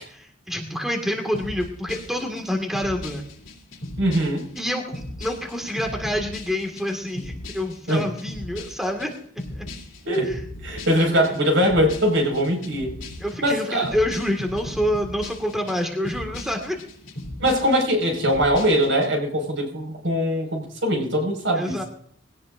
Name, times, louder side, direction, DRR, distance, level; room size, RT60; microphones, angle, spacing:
voice 1, 0.0-3.3 4.6-9.7 13.2-16.8 21.5-21.8, left 1 dB, ahead, 3 dB, 1.9 m, -27 dB
sound 1, 1.3-19.1, left 1 dB, 80° left, 2.9 m, -38 dB
voice 2, 4.0-4.5 7.9-8.1 10.0-10.3 10.6-13.0 13.4-14.0 17.4-21.8, equal, 70° right, 3 dB, 5.3 m, -22 dB
21.0 x 17.5 x 2.6 m, 0.62 s
head